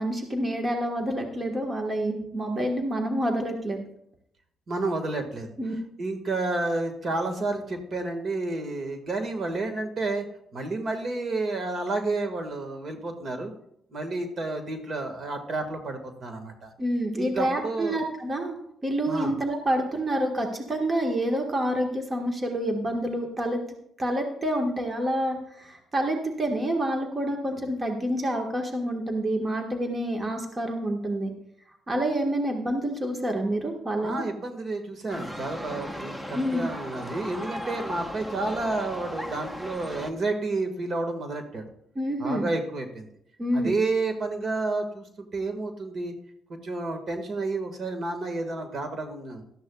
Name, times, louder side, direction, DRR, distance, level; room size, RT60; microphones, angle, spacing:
voice 1, 0.0-3.8 5.6-5.7 16.8-18.6 18.8-23.6 24.0-31.3 31.9-34.2 36.3-36.7 41.9-42.5 43.4-43.8, right 1 dB, 25° right, 2 dB, 1.6 m, -28 dB
voice 2, 4.7-5.5 6.0-10.2 10.5-13.5 13.9-16.7 17.2-18.0 19.1-19.3 34.0-41.6 42.2-43.1 43.5-46.1 46.6-49.4, right 2 dB, 50° right, 6 dB, 1.8 m, -30 dB
sound 1, 35.1-40.1, equal, 10° right, 1.0 m, -37 dB
17.0 x 12.5 x 2.4 m, 0.73 s
cardioid pair, 90°, 0 cm